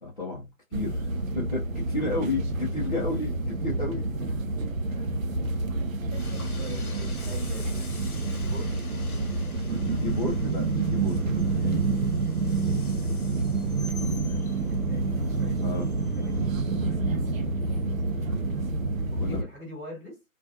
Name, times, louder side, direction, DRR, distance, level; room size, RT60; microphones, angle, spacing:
voice 1, 0.0-4.1 5.0-5.2 10.0-11.2 11.4-11.9 15.6-15.9 19.2-19.4, left 3 dB, 35° left, -5 dB, 0.5 m, -32 dB
sound 1, 0.7-19.4, right 3 dB, 65° right, 0.6 m, -28 dB
Train, 6.1-16.5, left 3 dB, 85° left, 0.8 m, -46 dB
voice 2, 6.6-7.9 8.4-8.8 13.9-15.7 16.1-17.4 18.2-18.4 19.1-20.2, left 1 dB, 20° right, -5 dB, 1.3 m, -44 dB
Fluorescent lamp with broken ignitor, 12.9-18.6, left 2 dB, 15° left, 0.9 m, -50 dB
2.4 x 2.2 x 2.6 m, 0.21 s
figure-of-eight pair, 145°, 43 cm